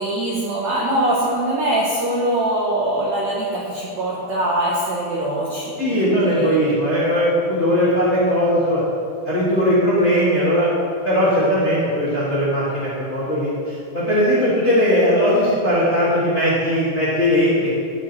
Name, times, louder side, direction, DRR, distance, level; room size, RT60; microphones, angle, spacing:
voice 1, 0.0-6.6, right 1 dB, 75° right, -4 dB, 1.6 m, -23 dB
voice 2, 5.8-8.8 9.2-10.7 11.0-17.7, equal, 30° left, -10 dB, 1.2 m, -19 dB
13.5 x 5.1 x 4.2 m, 2.4 s
omnidirectional pair, 4.6 m